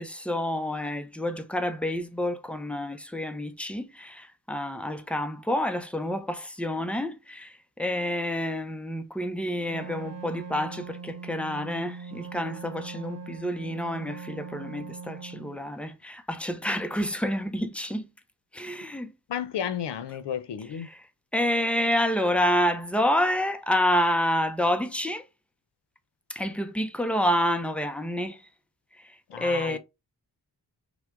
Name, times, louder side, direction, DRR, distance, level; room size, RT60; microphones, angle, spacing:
voice 1, 0.0-18.1 18.5-19.1 20.9-21.0 21.3-25.2 26.3-28.4 29.0-29.8, left 1 dB, 5° left, 0.5 m, -28 dB
Wind instrument woodwind instrument, 9.6-15.6, right 5 dB, 85° right, 1.0 m, -41 dB
voice 2, 19.3-20.9 29.3-29.8, left 8 dB, 80° left, 0.7 m, -32 dB
5.9 x 2.2 x 3.6 m
wide cardioid pair, 115°, 41 cm